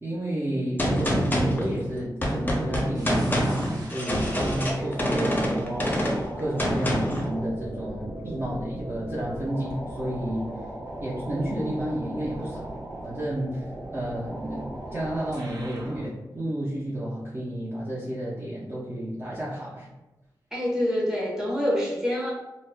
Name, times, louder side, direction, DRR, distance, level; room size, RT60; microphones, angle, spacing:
voice 1, 0.0-5.9 6.4-10.5 11.0-12.7 13.0-13.7 13.9-19.9, right 1 dB, 30° right, -8 dB, 0.7 m, -31 dB
Gunshot gunfire, 0.8-7.3, equal, 25° left, 0.6 m, -26 dB
sound 1, 2.9-16.1, right 1 dB, 60° right, 0.9 m, -39 dB
sound 2, 4.1-11.5, left 1 dB, 85° left, 0.5 m, -42 dB
voice 2, 20.5-22.3, left 1 dB, 5° right, -5 dB, 1.1 m, -26 dB
4.0 x 2.0 x 2.2 m, 1.0 s
wide cardioid pair, 85°, 8 cm